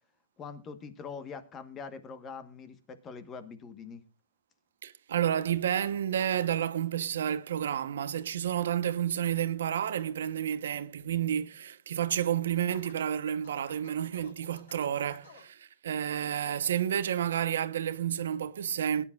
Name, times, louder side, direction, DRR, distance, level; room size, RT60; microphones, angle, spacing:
voice 1, 0.4-4.0, left 5 dB, 20° left, 1.2 m, -43 dB
voice 2, 4.8-19.0, right 10 dB, 90° right, 0.9 m, -30 dB
Scratching (performance technique), 12.7-15.5, left 4 dB, 85° left, 6.7 m, -52 dB
22.0 x 10.0 x 2.4 m
supercardioid pair, 170°, 0 cm